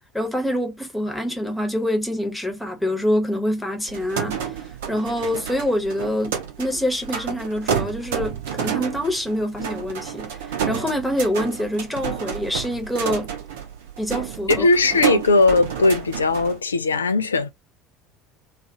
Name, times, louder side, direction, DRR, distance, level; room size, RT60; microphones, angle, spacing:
voice 1, 0.1-13.3 14.0-14.7 15.1-15.2, equal, 5° left, 1.0 m, -26 dB
sound 1, 3.9-16.6, right 8 dB, 70° right, 0.6 m, -30 dB
voice 2, 14.5-17.5, left 3 dB, 80° left, 0.3 m, -18 dB
2.4 x 2.4 x 2.7 m
figure-of-eight pair, 65°, 0 cm